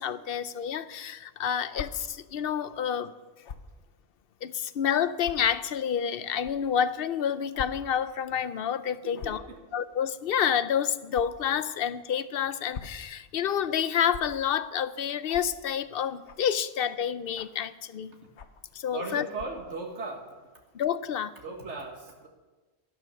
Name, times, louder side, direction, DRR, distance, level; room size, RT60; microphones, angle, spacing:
voice 1, 0.0-3.1 4.4-9.4 9.7-18.1 18.7-19.3 20.7-21.3, left 8 dB, 60° left, 14 dB, 0.8 m, -29 dB
sound 1, 1.7-1.9 3.4-3.7 4.4-4.5 5.2-5.3 6.4-6.5 7.5-7.7 8.0-8.1 9.1-9.4 11.1-11.3 12.5-13.0 14.1-14.2 15.3-15.5 16.2-16.5 17.3-17.6 18.4-18.6 19.3-19.6, left 6 dB, 85° left, 1.2 m, -41 dB
voice 2, 9.0-9.6 18.9-20.3 21.4-22.3, right 3 dB, 90° right, 1 dB, 1.9 m, -37 dB
12.5 x 12.0 x 6.9 m, 1.2 s
omnidirectional pair, 1.2 m